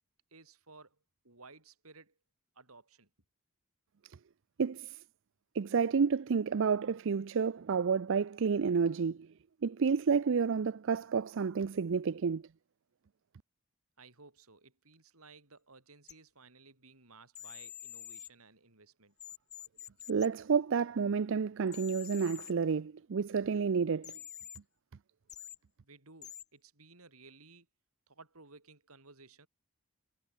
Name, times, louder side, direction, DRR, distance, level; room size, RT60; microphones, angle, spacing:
voice 1, 0.3-1.0 1.2-2.2 2.6-3.1 14.0-19.1 25.8-27.7 28.1-29.5, right 3 dB, 80° right, 5.5 m, -57 dB
voice 2, 4.6-5.0 5.5-9.3 9.6-12.4 20.1-24.2, right 5 dB, 60° right, 0.5 m, -30 dB
sound 1, 16.1-16.2 17.3-18.3 19.2-20.3 21.7-22.5 24.0-24.6 25.3-25.6 26.2-26.4, left 10 dB, 35° left, 1.5 m, -47 dB
head